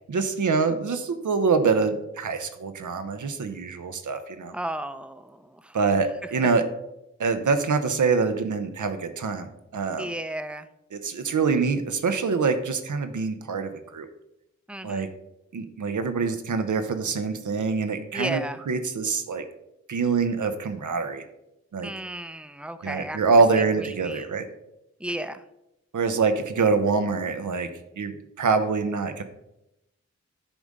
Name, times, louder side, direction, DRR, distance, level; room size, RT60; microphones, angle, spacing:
voice 1, 0.1-4.5 5.7-6.6 7.2-10.1 10.9-14.1 14.8-15.1 15.5-19.4 19.9-21.2 21.7-21.9 22.8-24.5 25.9-27.7 28.0-29.2, right 4 dB, 85° right, 8 dB, 0.8 m, -25 dB
voice 2, 4.5-5.7 10.0-10.7 14.7-15.1 18.1-18.6 21.8-23.2 23.6-24.3 25.0-25.4, right 1 dB, 5° right, 11 dB, 0.5 m, -34 dB
10.0 x 3.6 x 5.3 m, 0.87 s
wide cardioid pair, 60°, 29 cm